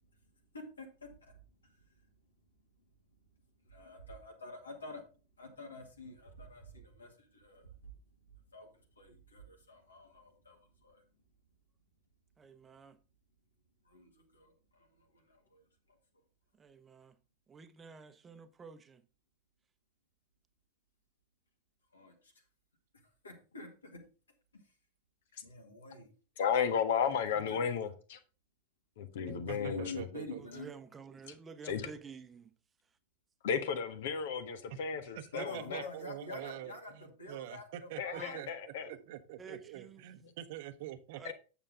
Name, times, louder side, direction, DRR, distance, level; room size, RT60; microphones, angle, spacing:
voice 1, 0.5-1.3 1.6-1.8 3.6-5.0 5.4-7.9 8.5-8.7 9.0-11.0 13.8-16.0 21.9-22.3 23.2-24.0 24.6-24.7 25.4-26.1 27.3-27.6 29.6-30.7 35.3-38.5, left 2 dB, 75° left, 2.1 m, -48 dB
voice 2, 12.4-13.0 16.6-17.1 17.5-19.0 30.4-32.5 38.1-38.4 39.4-40.0 41.2-41.3, right 5 dB, 20° right, 0.9 m, -50 dB
voice 3, 26.4-28.2 29.0-30.1 31.3-31.4 31.6-31.9 33.4-35.9 38.0-38.9 40.2-40.3 41.2-41.3, left 7 dB, 55° left, 1.3 m, -34 dB
voice 4, 29.3-30.4 35.2-41.3, right 12 dB, 50° right, 0.9 m, -46 dB
8.8 x 7.1 x 3.7 m
figure-of-eight pair, 90°, 0 cm